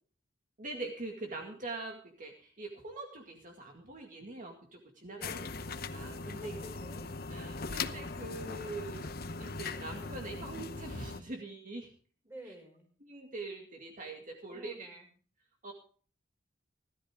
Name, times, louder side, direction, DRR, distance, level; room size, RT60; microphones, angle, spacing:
voice 1, 0.6-5.3 5.9-6.6 7.3-9.1 9.4-11.9 12.4-12.5 13.0-15.0 15.6-15.7, right 2 dB, 45° right, 2 dB, 2.2 m, -43 dB
voice 2, 5.1-5.7 6.3-7.1 12.3-12.9 14.5-15.1, equal, 10° right, 1 dB, 5.7 m, -50 dB
sound 1, 5.2-11.2, left 4 dB, 50° left, 0.9 m, -40 dB
17.0 x 13.0 x 3.7 m, 0.42 s
head